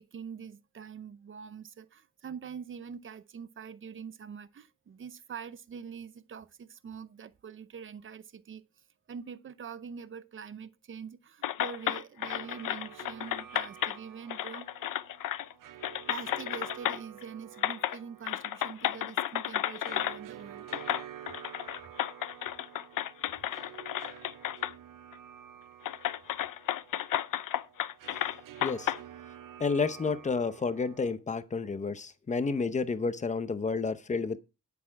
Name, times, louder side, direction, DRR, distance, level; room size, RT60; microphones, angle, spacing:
voice 1, 0.0-8.6 9.1-14.7 16.1-20.7, right 7 dB, 40° right, 0.7 m, -44 dB
sound 1, 11.4-14.0 14.3-15.5 15.8-17.2 17.6-18.0 18.2-20.2 20.7-24.7 25.1-25.2 25.8-29.0, left 12 dB, 80° left, 0.6 m, -33 dB
sound 2, 12.2-31.1, right 11 dB, 85° right, 0.8 m, -50 dB
voice 2, 28.6-28.9 29.6-34.4, left 4 dB, 25° left, 0.7 m, -30 dB
10.0 x 8.5 x 4.5 m
wide cardioid pair, 180°, 32 cm